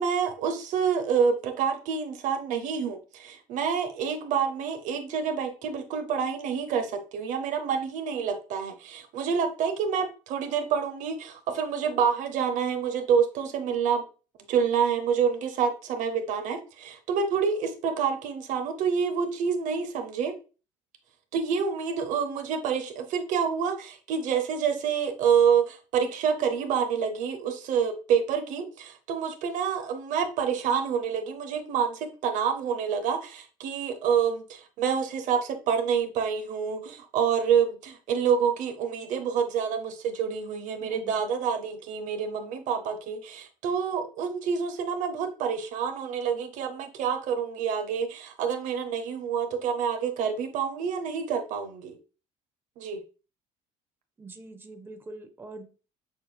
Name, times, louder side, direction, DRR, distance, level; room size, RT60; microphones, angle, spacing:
voice 1, 0.0-14.0 14.5-20.3 21.3-52.0 52.8-53.0, right 7 dB, 70° right, 0.7 m, -27 dB
voice 2, 40.8-41.2 54.2-55.7, right 2 dB, 15° right, 0.6 m, -44 dB
6.1 x 2.6 x 2.3 m
supercardioid pair, 95°, 13 cm